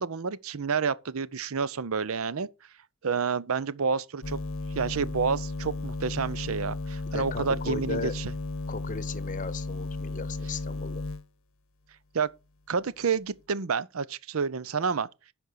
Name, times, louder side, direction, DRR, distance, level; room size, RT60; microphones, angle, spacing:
voice 1, 0.0-2.5 3.0-4.4 4.8-8.3 12.1-12.3 12.7-15.1, right 5 dB, 85° right, 0.6 m, -29 dB
sound 1, 4.2-11.2, left 2 dB, 75° left, 0.8 m, -34 dB
voice 2, 7.1-8.1 8.7-11.0, left 4 dB, 40° left, 0.8 m, -36 dB
10.0 x 5.4 x 6.4 m
head